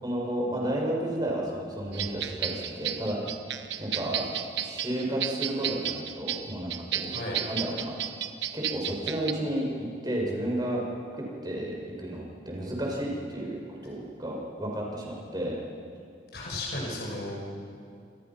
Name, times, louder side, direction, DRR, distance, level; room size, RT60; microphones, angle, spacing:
voice 1, 0.0-3.2 3.8-4.3 4.6-7.1 7.5-7.9 8.5-10.9 11.1-15.6, right 1 dB, 25° right, -2 dB, 6.5 m, -32 dB
sound 1, 1.9-9.3, right 10 dB, 85° right, 1.3 m, -33 dB
voice 2, 7.1-7.4 16.3-17.3, left 1 dB, 65° left, -2 dB, 5.6 m, -34 dB
28.5 x 26.5 x 6.0 m, 2.4 s
head